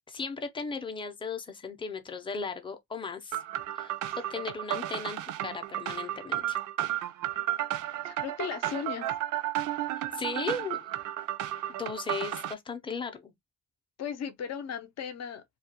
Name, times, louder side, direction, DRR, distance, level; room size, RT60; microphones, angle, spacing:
voice 1, 0.1-3.4 3.7-6.6 9.9-10.9 11.7-13.3, left 4 dB, 15° left, 0.6 m, -37 dB
sound 1, 3.3-12.5, right 13 dB, 80° right, 0.4 m, -33 dB
voice 2, 8.0-9.1 14.0-15.4, left 7 dB, 60° left, 0.6 m, -36 dB
2.3 x 2.2 x 2.8 m
cardioid pair, 90°, 30 cm